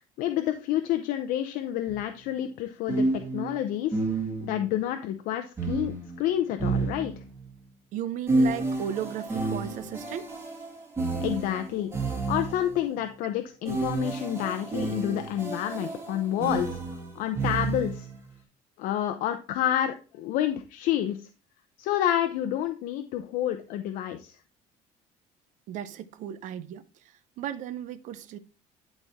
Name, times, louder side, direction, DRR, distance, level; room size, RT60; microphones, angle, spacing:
voice 1, 0.2-3.1 3.3-4.0 4.4-7.1 11.2-11.9 12.3-18.1 18.8-21.3 21.8-24.4, left 11 dB, 75° left, 0.7 m, -29 dB
sound 1, 1.9-2.0 2.9-4.7 5.6-7.5 8.3-12.8 13.6-18.2, right 3 dB, 15° right, 2.1 m, -30 dB
voice 2, 7.9-10.3 25.7-28.4, right 10 dB, 60° right, 0.8 m, -35 dB
11.5 x 4.3 x 3.6 m
cardioid pair, 170°, 14 cm